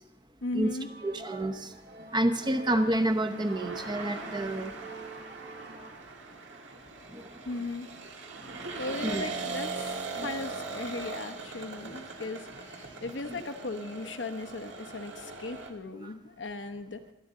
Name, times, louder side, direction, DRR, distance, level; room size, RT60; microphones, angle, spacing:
voice 1, 0.4-0.9 7.5-7.9 8.8-17.1, left 3 dB, 70° left, 8 dB, 1.0 m, -37 dB
sound 1, 0.8-5.9, right 3 dB, 55° right, 1.7 m, -46 dB
voice 2, 1.0-1.7 2.1-4.7 7.1-7.3 9.0-9.3 10.1-10.3 16.0-16.1, right 1 dB, 25° right, 7 dB, 0.9 m, -29 dB
sound 2, 2.2-15.7, right 4 dB, 75° right, 1.8 m, -40 dB
25.0 x 9.5 x 3.8 m, 0.88 s
head